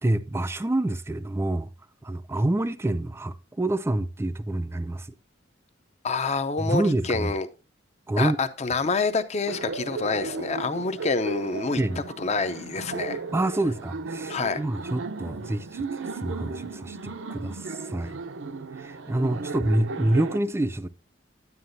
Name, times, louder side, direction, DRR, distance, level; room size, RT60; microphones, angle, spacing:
voice 1, 0.0-1.7 2.0-5.1 6.6-7.3 8.1-8.4 11.8-12.0 13.3-18.2 18.8-20.9, right 1 dB, 15° right, 0.4 m, -27 dB
voice 2, 6.0-7.5 8.2-11.8 12.2-13.2 14.3-14.6, left 4 dB, 35° left, 0.6 m, -27 dB
Laughter, 9.5-20.4, right 4 dB, 80° right, 0.6 m, -35 dB
9.6 x 9.5 x 2.6 m
head